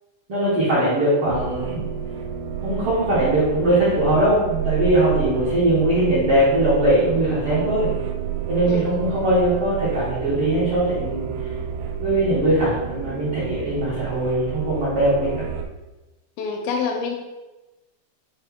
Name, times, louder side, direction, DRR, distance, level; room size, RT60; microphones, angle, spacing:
voice 1, 0.3-1.9 2.6-7.9 8.5-11.3 12.0-15.4, right 1 dB, 70° right, -10 dB, 1.3 m, -20 dB
sound 1, 1.3-15.7, right 8 dB, 90° right, 2.5 m, -30 dB
voice 2, 8.7-9.0 16.4-17.2, left 5 dB, 80° left, 2 dB, 2.2 m, -26 dB
6.4 x 2.3 x 3.5 m, 1.1 s
omnidirectional pair, 4.3 m